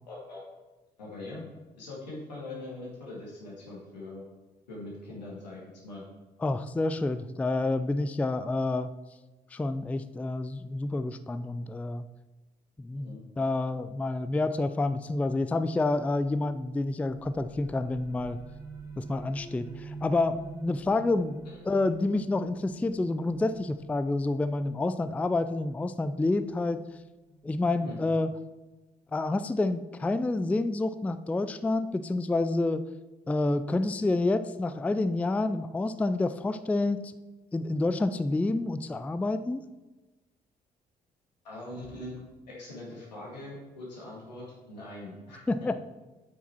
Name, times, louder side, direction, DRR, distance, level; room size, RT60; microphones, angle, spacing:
voice 1, 0.1-0.4 1.0-1.4 1.8-4.2 4.7-6.0 13.1-13.2 21.5-21.6 27.8-28.1 41.4-45.7, left 2 dB, 80° left, -4 dB, 1.9 m, -42 dB
voice 2, 6.4-8.9 9.5-12.0 12.8-18.4 19.0-26.8 27.4-28.3 29.1-32.8 33.3-37.0 37.5-39.6 45.5-45.7, left 2 dB, 5° left, 12 dB, 0.3 m, -28 dB
sound 1, 17.1-28.5, right 4 dB, 15° right, 1.9 m, -48 dB
8.2 x 5.8 x 4.5 m, 1.1 s
figure-of-eight pair, 45°, 21 cm